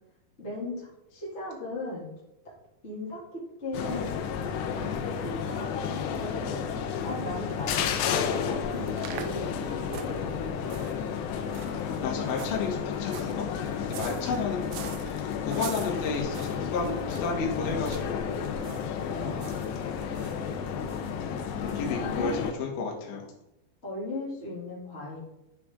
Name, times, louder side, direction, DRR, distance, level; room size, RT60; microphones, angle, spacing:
voice 1, 0.4-2.1 2.8-4.2 4.7-6.6 7.0-11.1 18.9-19.4 21.9-22.5 23.8-25.2, left 2 dB, 20° left, -6 dB, 1.9 m, -38 dB
sound 1, 3.7-22.5, left 7 dB, 80° left, 2.9 m, -32 dB
sound 2, 8.7-17.4 17.8-18.1 18.4-18.9 19.1-20.4 20.9-21.1 21.7-21.8 22.1-22.2, right 9 dB, 80° right, 2.9 m, -45 dB
voice 2, 12.0-14.6 15.0-18.4 21.5-23.3, left 4 dB, 60° left, -1 dB, 2.5 m, -32 dB
10.0 x 6.0 x 3.7 m, 0.87 s
omnidirectional pair, 5.2 m